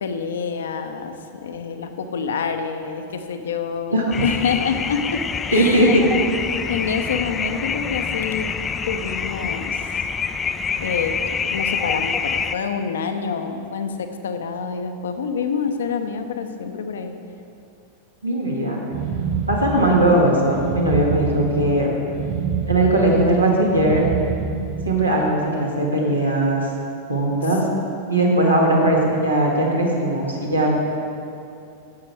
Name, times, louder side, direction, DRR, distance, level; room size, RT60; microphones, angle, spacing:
voice 1, 0.0-6.0 6.7-8.5 8.9-9.8 10.8-17.1, left 6 dB, 65° left, 7 dB, 0.7 m, -27 dB
voice 2, 3.9-4.3 5.5-6.1 18.2-18.8 19.5-21.9 22.7-24.0 24.8-26.7 27.1-27.6 28.1-30.8, right 1 dB, 85° right, -2 dB, 1.7 m, -19 dB
sound 1, 4.1-12.5, left 6 dB, 20° left, 0.4 m, -26 dB
sound 2, 18.9-25.2, right 5 dB, 45° right, 2.6 m, -27 dB
10.5 x 7.5 x 4.7 m, 2.6 s
figure-of-eight pair, 90°, 0 cm